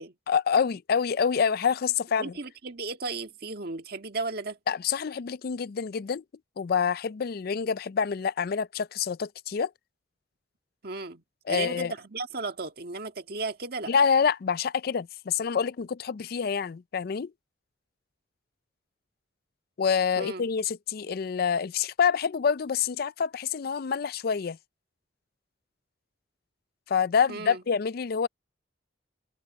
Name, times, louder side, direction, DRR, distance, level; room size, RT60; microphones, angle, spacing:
voice 1, 0.3-2.3 4.7-6.2 6.6-9.7 11.5-11.9 13.9-17.3 19.8-24.6 26.9-28.3, left 6 dB, 55° left, 0.4 m, -27 dB
voice 2, 2.2-4.6 10.8-13.9 20.2-20.4 27.3-27.6, right 3 dB, 55° right, 1.7 m, -35 dB
head